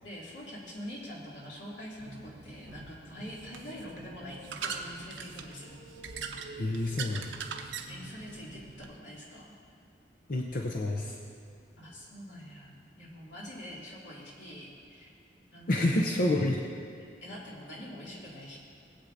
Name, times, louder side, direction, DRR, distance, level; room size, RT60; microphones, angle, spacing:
voice 1, 0.0-5.8 7.9-9.5 11.8-15.1 15.5-16.2 17.2-18.6, equal, 85° left, -6 dB, 2.6 m, -45 dB
sound 1, 2.0-8.9, right 5 dB, 90° right, 0.7 m, -42 dB
voice 2, 6.5-7.3 10.3-11.2 15.7-16.6, left 1 dB, 50° left, 0 dB, 0.7 m, -28 dB
19.0 x 8.2 x 2.6 m, 2.5 s
head